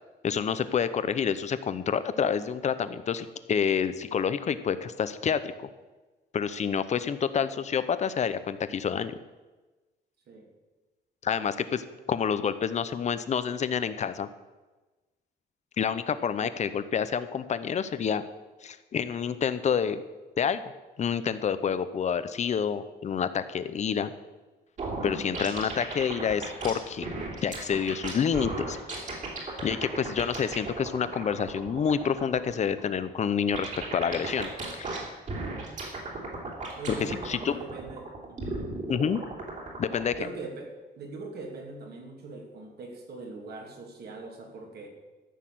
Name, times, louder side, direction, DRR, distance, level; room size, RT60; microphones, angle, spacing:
voice 1, 0.2-5.7 6.3-9.2 11.2-14.3 15.8-18.2 18.6-20.0 20.4-20.6 21.0-24.1 25.0-27.1 27.4-28.8 29.6-34.5 34.8-34.9 37.0-37.5 38.9-39.2 39.8-40.1, left 7 dB, 40° left, 13 dB, 0.7 m, -28 dB
sound 1, 24.8-40.2, right 2 dB, 45° right, 3.1 m, -36 dB
voice 2, 36.7-38.6 40.2-44.9, right 3 dB, 60° right, 1 dB, 2.6 m, -42 dB
14.0 x 6.5 x 7.7 m, 1.2 s
cardioid pair, 160°, 18 cm